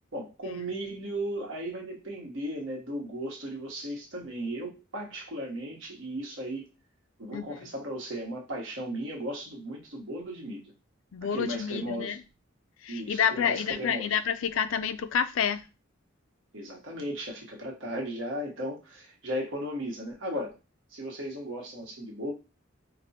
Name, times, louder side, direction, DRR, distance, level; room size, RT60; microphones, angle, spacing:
voice 1, 0.1-6.7 7.2-10.7 11.3-12.2 12.9-14.1 16.5-20.6 20.9-22.3, right 1 dB, 75° right, 1.2 m, -36 dB
voice 2, 7.3-7.7 11.1-12.2 12.8-15.6, left 7 dB, 85° left, 0.4 m, -29 dB
5.0 x 2.1 x 2.8 m
head